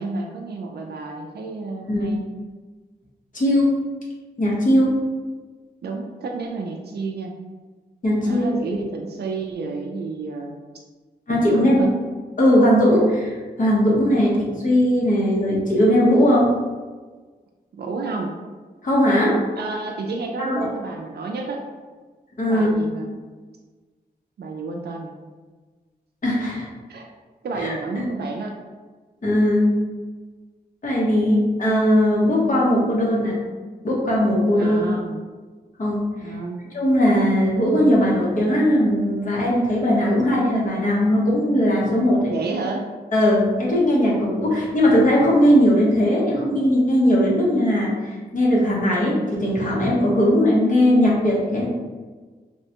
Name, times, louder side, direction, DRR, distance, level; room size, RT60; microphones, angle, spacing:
voice 1, 0.0-2.3 5.8-7.3 8.2-10.6 11.3-11.9 17.7-18.3 19.6-21.6 22.4-23.2 24.4-25.1 26.9-27.1 27.4-28.5 34.5-35.2 36.2-36.6 42.3-42.9, right 3 dB, 75° right, 1 dB, 0.4 m, -30 dB
voice 2, 3.3-3.7 4.4-4.9 8.0-8.5 11.3-11.9 12.4-16.5 18.8-19.4 20.4-20.6 22.4-22.7 26.2-26.7 27.6-28.1 29.2-29.7 30.8-33.4 33.8-34.8 35.8-36.3 36.7-42.3 43.1-51.7, equal, 55° left, -5 dB, 1.0 m, -19 dB
4.2 x 2.1 x 2.8 m, 1.4 s
wide cardioid pair, 120°, 17 cm